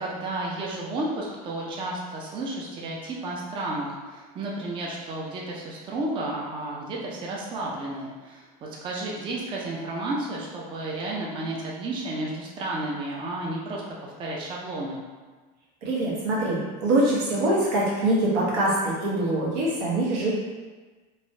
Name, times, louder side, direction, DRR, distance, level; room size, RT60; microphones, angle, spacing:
voice 1, 0.0-15.0, right 2 dB, 25° right, -3 dB, 0.4 m, -32 dB
voice 2, 15.8-20.3, right 1 dB, 90° right, -6 dB, 1.1 m, -24 dB
3.0 x 2.1 x 2.7 m, 1.3 s
cardioid pair, 150°, 20 cm